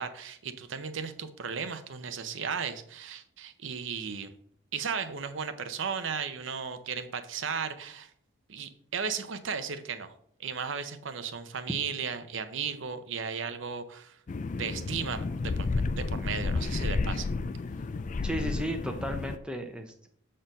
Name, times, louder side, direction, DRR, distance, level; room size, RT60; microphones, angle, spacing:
voice 1, 0.0-4.3 4.7-8.1 8.5-10.1 10.4-14.2 14.6-17.3, right 6 dB, 65° right, 9 dB, 0.7 m, -35 dB
sound 1, 14.3-19.4, left 3 dB, 35° left, 0.3 m, -31 dB
voice 2, 18.2-20.1, equal, 5° right, 4 dB, 0.6 m, -34 dB
7.5 x 4.4 x 5.2 m, 0.65 s
head